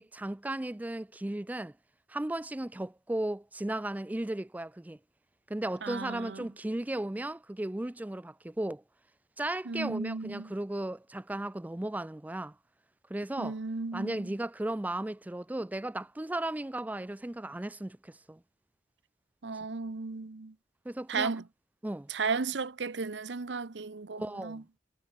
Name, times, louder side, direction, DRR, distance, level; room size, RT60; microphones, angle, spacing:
voice 1, 0.0-1.7 2.1-5.0 5.5-8.8 9.4-12.6 13.1-13.6 13.9-18.4 20.9-21.3 21.8-22.1 24.2-24.6, right 1 dB, 10° right, 0.4 m, -35 dB
voice 2, 5.8-6.5 9.7-10.5 13.4-14.3 19.4-20.5 21.1-21.4 22.1-24.6, right 4 dB, 75° right, 0.8 m, -34 dB
head